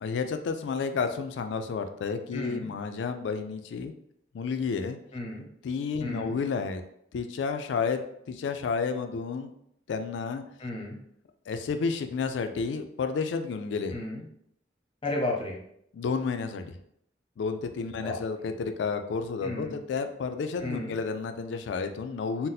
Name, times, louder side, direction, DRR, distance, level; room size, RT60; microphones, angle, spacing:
voice 1, 0.0-3.9 4.3-5.0 5.6-6.8 7.1-8.0 8.3-9.5 9.9-10.4 11.5-13.9 15.9-16.7 17.4-22.5, left 5 dB, 75° left, 8 dB, 0.3 m, -31 dB
voice 2, 2.3-2.7 5.1-5.5 6.0-6.3 10.6-11.0 13.9-14.2 15.0-15.6 18.0-18.2 19.4-19.8 20.6-20.9, left 2 dB, 30° left, -1 dB, 0.6 m, -33 dB
2.7 x 2.0 x 3.9 m, 0.71 s
head